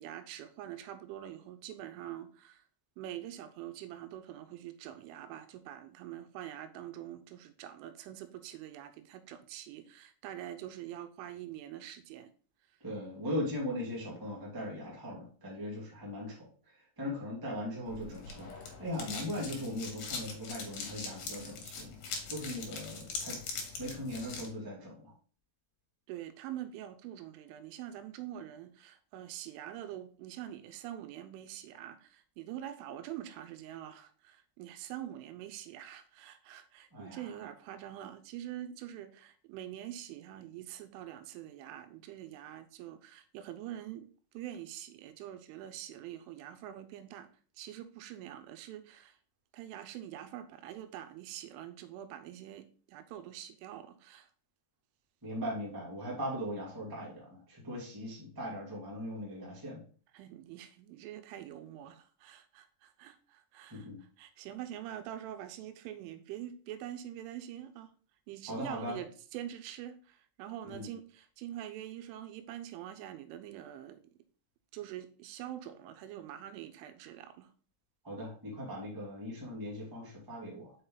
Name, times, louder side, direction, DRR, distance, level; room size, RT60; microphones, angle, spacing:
voice 1, 0.0-2.6 3.0-12.3 26.1-44.1 44.3-47.3 47.6-49.2 49.5-54.3 60.1-67.9 68.3-74.0 74.7-77.5, right 12 dB, 85° right, 3.1 m, -45 dB
voice 2, 12.8-16.5 17.0-21.9 22.3-23.4 23.8-25.1 36.9-37.3 55.2-59.8 63.7-64.0 68.5-69.0 70.6-70.9 78.0-80.7, left 1 dB, 25° right, 0.5 m, -39 dB
sound 1, 17.9-24.5, left 4 dB, 65° left, 2.7 m, -42 dB
6.4 x 5.5 x 3.9 m
omnidirectional pair, 5.6 m